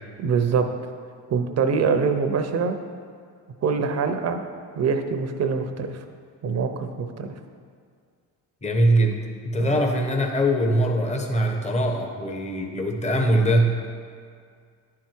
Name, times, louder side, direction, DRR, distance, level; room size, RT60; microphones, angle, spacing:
voice 1, 0.2-0.7 1.3-2.8 3.6-4.4 4.7-6.0 6.4-7.3 9.6-9.9, right 5 dB, 45° right, 7 dB, 0.8 m, -24 dB
voice 2, 8.6-9.2 9.4-13.9, right 1 dB, 20° left, 2 dB, 1.1 m, -22 dB
10.5 x 4.8 x 4.5 m, 2.1 s
supercardioid pair, 80°, 37 cm